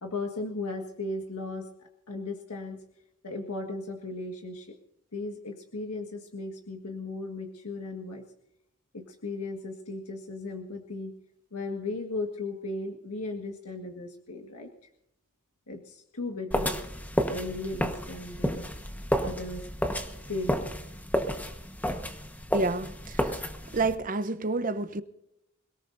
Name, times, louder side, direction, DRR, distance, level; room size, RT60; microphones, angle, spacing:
voice 1, 0.0-2.8 3.2-4.7 5.1-8.2 8.9-11.1 11.5-14.7 15.7-16.8 17.3-18.6 19.2-19.7 20.3-20.6, left 2 dB, 90° left, 1.7 m, -36 dB
sound 1, 16.5-23.9, equal, 5° left, 1.3 m, -31 dB
voice 2, 22.5-23.4 23.7-25.0, right 3 dB, 35° right, 0.8 m, -29 dB
28.0 x 18.0 x 2.7 m
head